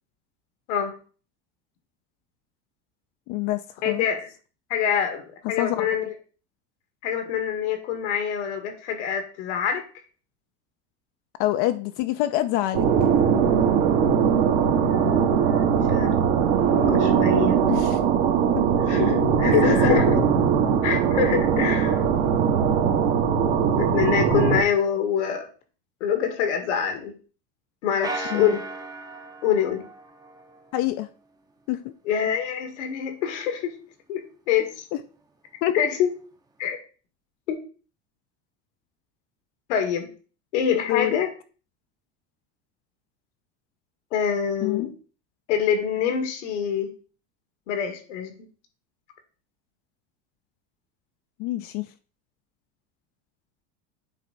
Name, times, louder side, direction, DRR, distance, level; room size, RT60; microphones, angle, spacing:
voice 1, 3.3-4.0 5.6-5.9 11.4-13.1 17.7-18.0 18.5-18.6 19.4-20.0 28.3-28.6 30.7-31.1 31.7-31.9 34.9-35.0 35.6-35.7 40.9-41.2 44.6-44.9 51.4-51.9, left 14 dB, 60° left, 8 dB, 0.6 m, -26 dB
voice 2, 3.8-4.3 4.7-6.1 7.0-9.8 14.9-16.1 16.7-17.6 18.9-20.1 20.8-22.0 23.8-25.5 26.0-27.1 27.8-28.6 29.4-29.8 32.1-33.7 34.1-34.9 35.7-36.1 36.6-36.8 37.5-37.6 39.7-40.1 40.5-41.3 44.1-44.9 45.5-46.9 47.7-48.3, left 8 dB, 90° left, 6 dB, 1.8 m, -25 dB
sound 1, 12.7-24.6, right 7 dB, 60° right, 1.5 m, -20 dB
sound 2, 28.0-30.7, right 2 dB, 10° right, 0.7 m, -36 dB
9.0 x 3.3 x 4.0 m, 0.38 s
supercardioid pair, 120°, 35 cm